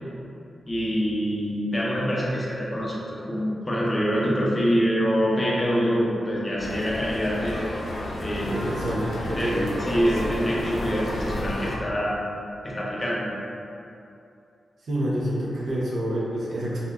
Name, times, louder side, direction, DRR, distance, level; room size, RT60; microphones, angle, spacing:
voice 1, 0.7-7.6 8.2-8.6 9.4-12.1 12.6-13.3, equal, 20° left, -6 dB, 0.6 m, -25 dB
sound 1, 6.6-11.8, left 1 dB, 65° left, 0.5 m, -31 dB
voice 2, 8.5-9.6 14.9-16.9, right 1 dB, 80° right, -7 dB, 0.8 m, -28 dB
4.0 x 2.8 x 2.5 m, 2.7 s
wide cardioid pair, 120°, 0 cm